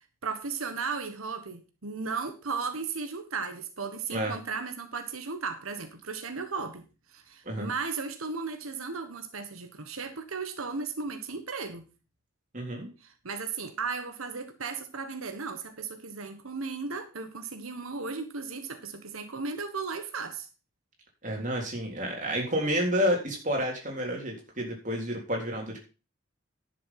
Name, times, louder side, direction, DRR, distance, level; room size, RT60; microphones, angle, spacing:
voice 1, 0.2-11.9 13.0-20.5, right 4 dB, 90° right, 1.4 m, -35 dB
voice 2, 12.5-12.9 21.2-25.8, equal, 35° right, 3.7 m, -30 dB
11.0 x 6.9 x 5.7 m
head